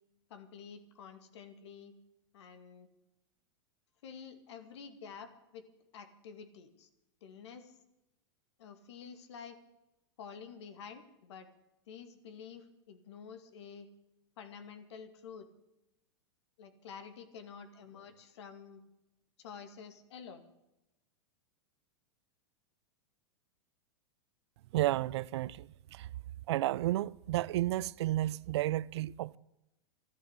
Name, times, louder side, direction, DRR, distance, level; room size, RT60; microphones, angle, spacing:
voice 1, 0.3-1.9 2.3-2.9 4.0-5.6 5.9-6.9 7.2-7.8 8.6-9.6 10.2-11.5 11.9-13.9 14.4-15.5 16.6-18.8 19.4-20.4, left 6 dB, 70° left, 2.3 m, -49 dB
voice 2, 24.7-26.1 26.5-29.4, right 15 dB, 70° right, 0.5 m, -32 dB
13.0 x 11.5 x 8.3 m
hypercardioid pair, 125°, 15 cm